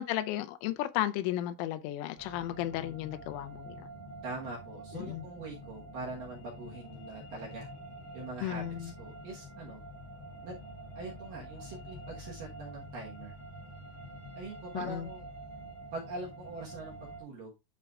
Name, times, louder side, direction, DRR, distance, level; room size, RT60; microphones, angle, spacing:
voice 1, 0.0-3.9 4.9-5.2 8.4-8.9 14.7-15.1, left 13 dB, 85° left, 3.1 m, -34 dB
sound 1, 2.2-17.2, right 1 dB, 20° left, 1.3 m, -47 dB
voice 2, 4.2-7.7 8.1-9.8 10.4-10.6 11.0-13.3 14.4-15.2 15.9-16.9 17.2-17.5, right 2 dB, 65° right, 2.2 m, -43 dB
12.0 x 4.5 x 2.4 m
omnidirectional pair, 5.6 m